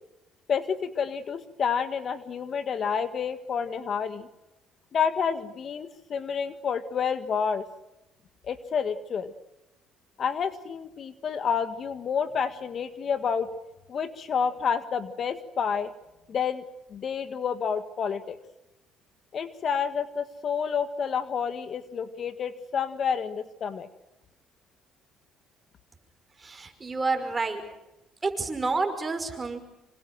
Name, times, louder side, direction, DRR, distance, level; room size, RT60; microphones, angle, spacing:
voice 1, 0.5-4.3 4.9-7.6 8.4-9.3 10.2-13.5 13.9-15.9 16.3-16.6 16.9-18.4 19.3-23.9, left 6 dB, 50° left, 11 dB, 1.7 m, -29 dB
voice 2, 26.4-27.6 28.2-29.6, right 3 dB, 25° right, 6 dB, 5.5 m, -29 dB
26.5 x 25.5 x 6.3 m, 0.97 s
supercardioid pair, 85°, 0 cm